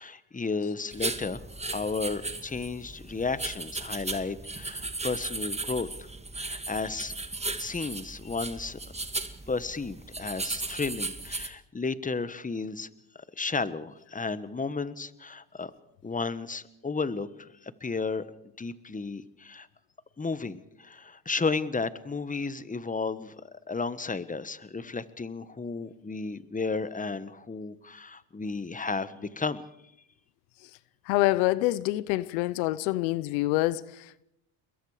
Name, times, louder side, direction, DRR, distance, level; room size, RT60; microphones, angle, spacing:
voice 1, 0.0-1.4 1.7-6.1 6.3-7.1 7.6-8.8 9.5-12.9 13.1-15.7 16.0-18.2 18.6-19.7 20.2-29.6, left 4 dB, 15° left, 1.4 m, -33 dB
sound 1, 0.9-11.5, right 3 dB, 15° right, 2.0 m, -36 dB
voice 2, 31.1-34.2, left 17 dB, 85° left, 0.8 m, -26 dB
29.0 x 22.0 x 5.0 m
supercardioid pair, 75°, 50 cm